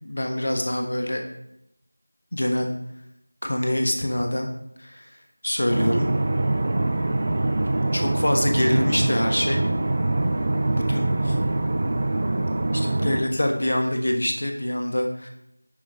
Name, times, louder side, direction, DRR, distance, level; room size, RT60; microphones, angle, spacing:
voice 1, 0.0-1.2 2.3-2.7 3.4-4.5 4.8-5.1 5.4-6.1 7.9-9.6 10.7-11.4 12.7-15.3, left 1 dB, 50° left, 3 dB, 1.1 m, -25 dB
sound 1, 5.7-13.2, right 2 dB, 30° right, 0.7 m, -24 dB
9.9 x 3.8 x 4.8 m, 0.79 s
figure-of-eight pair, 175°, 0 cm